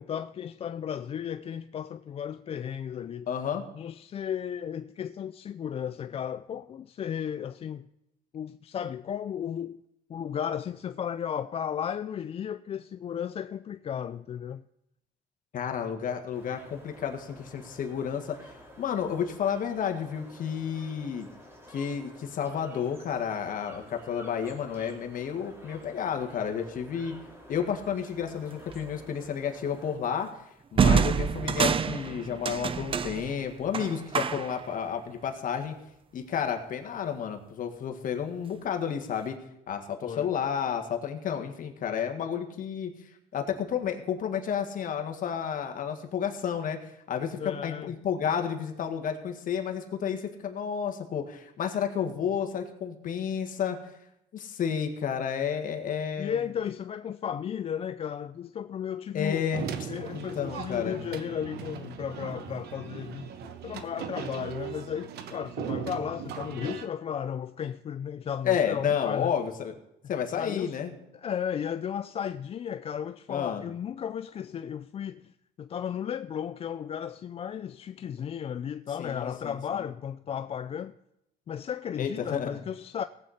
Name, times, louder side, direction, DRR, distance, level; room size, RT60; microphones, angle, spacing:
voice 1, 0.0-3.3 3.7-7.8 8.3-9.8 10.1-14.6 40.0-40.3 47.4-47.9 56.2-59.4 59.9-69.3 70.3-70.8 71.1-80.9 81.5-83.0, left 8 dB, 35° left, 0.4 m, -34 dB
voice 2, 3.3-3.6 15.5-18.4 18.8-21.3 21.7-27.1 27.5-30.3 30.7-35.7 36.1-39.4 39.7-42.9 43.3-46.8 47.1-53.8 54.3-56.3 59.1-59.9 60.1-61.0 68.4-69.7 70.1-70.9 73.3-73.6 79.0-79.8 82.0-82.5, left 8 dB, 55° left, 1.7 m, -31 dB
sound 1, 16.3-30.0, equal, 15° right, 3.2 m, -51 dB
sound 2, 28.7-29.0 30.8-34.7, right 6 dB, 30° right, 0.6 m, -27 dB
sound 3, 59.5-66.9, right 8 dB, 75° right, 1.1 m, -38 dB
18.0 x 7.9 x 4.2 m
cardioid pair, 110°, 17 cm